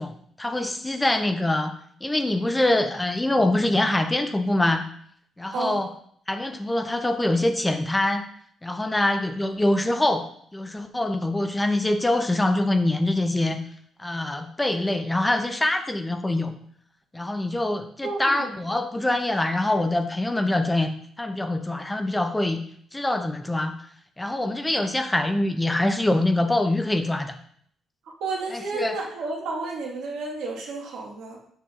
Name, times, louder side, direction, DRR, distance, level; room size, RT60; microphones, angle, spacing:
voice 1, 0.0-1.7 2.0-4.9 5.4-5.9 6.3-8.3 8.6-13.6 14.0-16.5 17.1-22.6 22.9-23.8 24.2-27.3 28.5-29.0, left 1 dB, 15° left, 7 dB, 0.6 m, -24 dB
voice 2, 18.0-18.5 28.2-31.4, right 3 dB, 85° right, -2 dB, 1.5 m, -31 dB
7.1 x 5.6 x 2.4 m, 0.63 s
cardioid pair, 90°, 0 cm